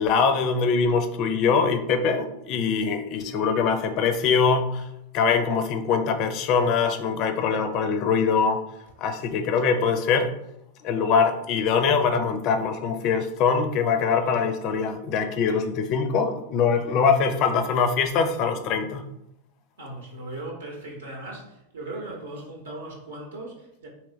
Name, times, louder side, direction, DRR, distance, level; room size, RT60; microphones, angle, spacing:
voice 1, 0.0-4.9 5.1-8.6 9.0-10.3 10.8-19.1, left 5 dB, 40° left, 0.4 m, -23 dB
voice 2, 19.8-23.9, right 2 dB, 65° right, 0.8 m, -38 dB
3.3 x 2.9 x 3.2 m
figure-of-eight pair, 90°, 0 cm